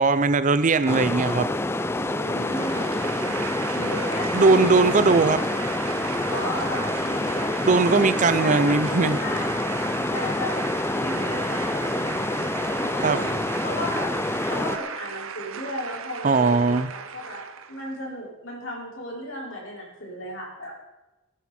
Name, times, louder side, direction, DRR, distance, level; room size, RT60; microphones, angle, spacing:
voice 1, 0.0-1.5 4.3-5.5 7.7-9.2 13.0-13.2 16.2-16.9, right 3 dB, 35° right, 13 dB, 0.5 m, -19 dB
sound 1, 0.9-14.8, left 2 dB, 10° left, 0.5 m, -27 dB
voice 2, 1.9-4.7 6.3-7.5 7.9-8.2 8.4-9.5 10.1-13.3 13.6-20.7, equal, 60° left, -3 dB, 5.1 m, -35 dB
sound 2, 1.9-18.0, right 7 dB, 80° right, 0.9 m, -36 dB
18.5 x 11.0 x 4.3 m, 1.1 s
head